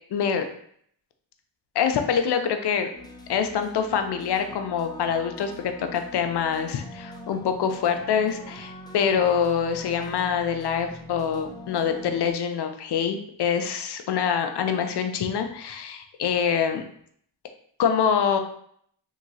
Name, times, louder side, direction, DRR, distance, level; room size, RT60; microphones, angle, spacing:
voice 1, 0.1-0.5 1.7-2.9 3.3-16.8 17.8-18.4, left 7 dB, 55° left, 7 dB, 0.6 m, -25 dB
sound 1, 2.9-12.3, left 1 dB, 10° left, 0.5 m, -43 dB
2.9 x 2.7 x 2.7 m, 0.64 s
cardioid pair, 50°, 48 cm